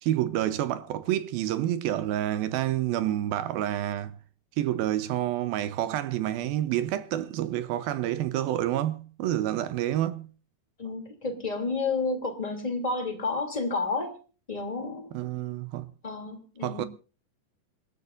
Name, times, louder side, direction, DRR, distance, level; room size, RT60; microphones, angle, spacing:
voice 1, 0.0-4.1 4.6-10.3 15.1-15.9 16.6-16.9, right 13 dB, 75° right, 2.2 m, -28 dB
voice 2, 10.8-14.1 14.5-15.1 16.0-16.8, left 3 dB, 15° left, 1.6 m, -30 dB
27.5 x 13.5 x 2.5 m
omnidirectional pair, 5.1 m